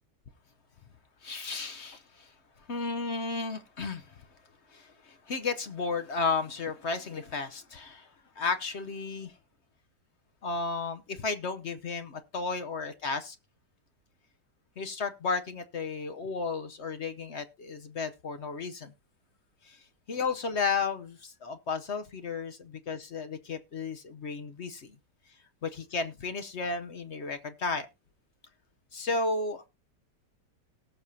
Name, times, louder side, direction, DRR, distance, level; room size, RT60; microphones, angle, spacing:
voice 1, 1.2-2.3 2.7-4.2 4.7-8.1 8.4-9.3 10.4-13.4 14.8-18.9 19.6-19.8 20.1-24.9 25.6-27.9 28.9-29.7, left 4 dB, 55° left, 0.8 m, -33 dB
18.5 x 7.0 x 2.7 m
omnidirectional pair, 1.8 m